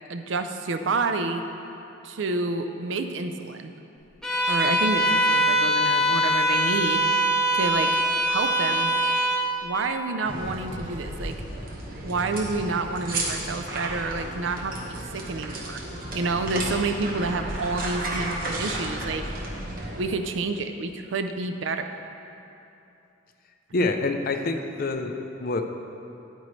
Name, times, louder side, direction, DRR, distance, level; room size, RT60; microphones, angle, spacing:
voice 1, 0.1-1.4 2.0-3.7 4.5-7.9 8.2-8.9 9.6-11.3 12.0-15.8 16.1-19.2 20.0-21.9 23.8-23.9, right 3 dB, 75° right, 7 dB, 0.5 m, -29 dB
Bowed string instrument, 4.2-9.5, right 1 dB, 5° left, 1.0 m, -22 dB
sound 1, 10.2-20.0, right 1 dB, 50° right, 1.3 m, -33 dB
voice 2, 23.7-25.6, left 3 dB, 50° left, 5 dB, 0.5 m, -27 dB
9.8 x 9.0 x 3.2 m, 2.8 s
head